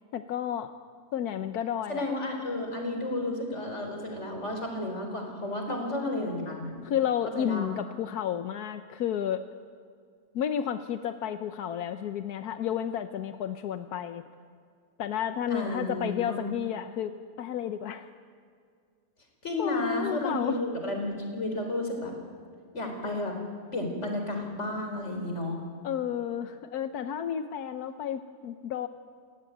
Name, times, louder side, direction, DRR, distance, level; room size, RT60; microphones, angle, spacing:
voice 1, 0.1-0.7 1.1-2.1 5.7-5.8 6.8-9.4 10.3-14.2 15.0-18.1 19.6-20.6 25.8-28.9, left 9 dB, 90° left, 9 dB, 1.3 m, -31 dB
voice 2, 1.9-6.8 7.3-7.7 15.5-16.5 19.4-22.1 22.7-23.4 23.7-25.6, left 1 dB, 50° left, 3 dB, 4.6 m, -32 dB
29.5 x 15.5 x 9.1 m, 2.1 s
omnidirectional pair, 1.6 m